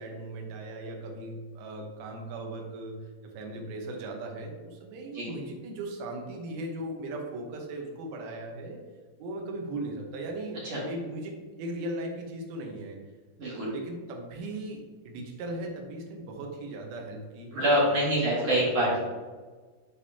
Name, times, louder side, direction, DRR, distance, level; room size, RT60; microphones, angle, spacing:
voice 1, 0.0-3.0 3.3-8.8 9.2-13.0 13.7-18.3 18.6-19.0, right 2 dB, 75° right, 1 dB, 2.8 m, -38 dB
voice 2, 13.4-13.7 17.5-19.0, equal, 50° right, -7 dB, 2.7 m, -25 dB
11.5 x 3.9 x 2.8 m, 1.4 s
omnidirectional pair, 4.5 m